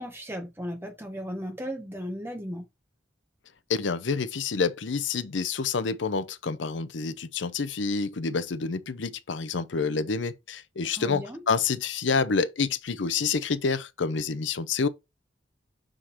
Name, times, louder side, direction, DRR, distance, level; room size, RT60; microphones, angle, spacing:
voice 1, 0.0-2.6 10.9-11.4, equal, 15° right, 1.6 m, -36 dB
voice 2, 3.7-14.9, left 5 dB, 80° left, 0.7 m, -28 dB
6.4 x 3.8 x 4.4 m
head